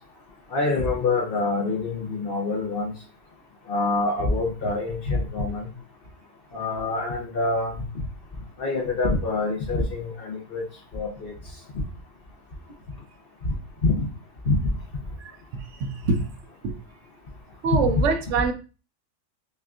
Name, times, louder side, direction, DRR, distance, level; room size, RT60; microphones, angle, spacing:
voice 1, 0.5-2.9 3.7-5.7 6.5-7.7 8.6-10.6 10.9-11.3 13.4-13.5 13.8-14.0 14.5-14.6 17.7-17.9, left 3 dB, 50° left, 0 dB, 0.8 m, -25 dB
voice 2, 15.2-16.2 16.6-16.8 17.6-18.5, right 5 dB, 65° right, 6 dB, 0.8 m, -25 dB
5.4 x 2.4 x 2.3 m, 0.34 s
omnidirectional pair, 1.6 m